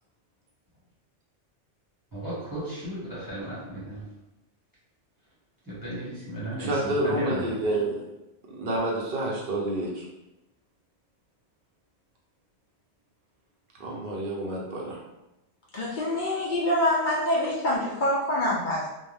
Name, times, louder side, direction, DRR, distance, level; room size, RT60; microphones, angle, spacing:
voice 1, 2.1-4.0 5.6-7.4, right 1 dB, 20° right, -9 dB, 1.0 m, -35 dB
voice 2, 6.6-8.0 8.5-10.0 13.8-15.0, right 1 dB, 55° right, -3 dB, 0.8 m, -28 dB
voice 3, 15.7-18.9, left 1 dB, 55° left, -5 dB, 0.5 m, -25 dB
2.6 x 2.1 x 3.2 m, 0.96 s
omnidirectional pair, 1.2 m